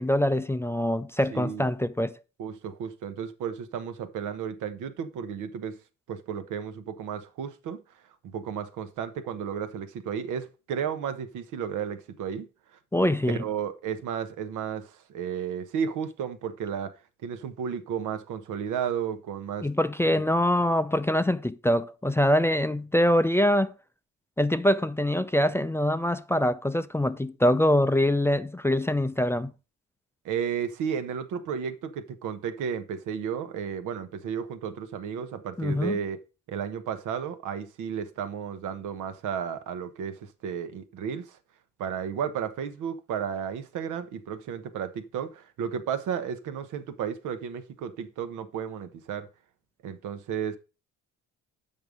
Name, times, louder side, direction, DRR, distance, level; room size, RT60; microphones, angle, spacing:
voice 1, 0.0-2.1 12.9-13.4 19.6-23.7 24.4-29.5 35.6-36.0, left 1 dB, 10° left, 0.4 m, -24 dB
voice 2, 1.3-1.7 2.4-5.8 6.1-7.8 8.2-12.5 13.3-16.9 17.2-19.7 20.0-20.3 30.2-36.2 36.5-41.4 41.8-49.3 49.8-50.6, right 7 dB, 85° right, 1.0 m, -33 dB
7.8 x 5.4 x 4.9 m
cardioid pair, 90°, 30 cm